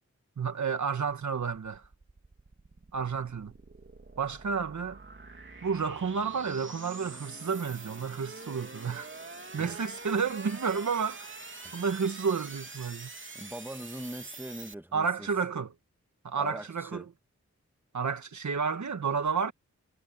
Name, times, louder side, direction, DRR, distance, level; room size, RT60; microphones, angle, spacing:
voice 1, 0.4-1.8 2.9-3.5 4.2-5.0 5.6-9.1 9.5-11.3 11.7-13.1 14.9-15.7 16.2-17.0 17.9-19.5, right 6 dB, 70° right, 1.6 m, -31 dB
sound 1, 1.5-14.7, right 3 dB, 40° right, 3.1 m, -46 dB
voice 2, 13.3-15.3 16.4-17.0, right 1 dB, 5° right, 2.1 m, -41 dB
wide cardioid pair, 65°, 30 cm